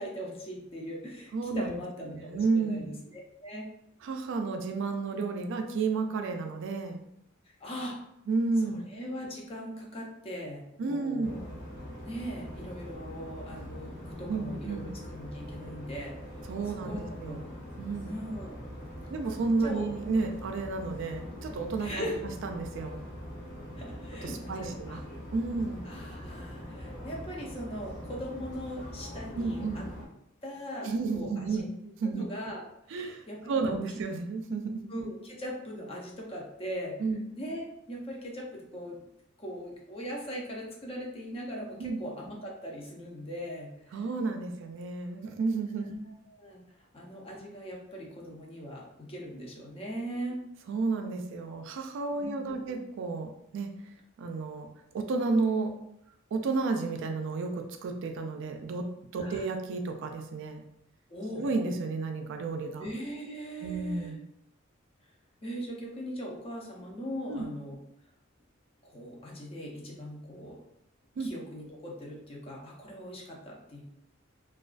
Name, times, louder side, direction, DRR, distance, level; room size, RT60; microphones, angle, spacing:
voice 1, 0.0-3.7 7.6-8.0 8.7-11.4 12.0-16.4 16.8-17.4 18.0-18.7 19.6-19.8 21.8-22.2 23.8-25.0 25.8-29.8 30.4-31.5 32.1-32.6 32.9-33.7 34.9-37.0 37.3-39.0 39.4-44.0 45.9-46.0 46.3-46.6 46.9-50.4 52.1-52.8 59.2-59.4 61.1-61.5 62.8-64.1 65.4-67.8 68.8-70.6 71.2-73.8, equal, 30° left, -2 dB, 0.5 m, -40 dB
voice 2, 1.3-1.7 2.1-2.9 4.0-7.0 8.3-8.8 10.8-11.4 14.3-14.9 16.5-17.4 17.8-18.1 19.1-22.0 22.4-23.0 24.2-25.0 25.3-25.8 29.3-29.8 30.8-31.7 32.0-32.2 32.9-34.9 37.0-37.2 41.8-42.0 43.9-45.9 50.7-53.7 54.2-54.7 54.9-55.8 56.3-58.9 59.1-60.6 61.3-62.9 63.6-64.2 67.3-67.5 71.2-71.3, right 3 dB, 65° right, 4 dB, 0.3 m, -31 dB
sound 1, 11.2-30.1, equal, 60° left, 0.8 m, -43 dB
2.3 x 2.2 x 2.4 m, 0.79 s
head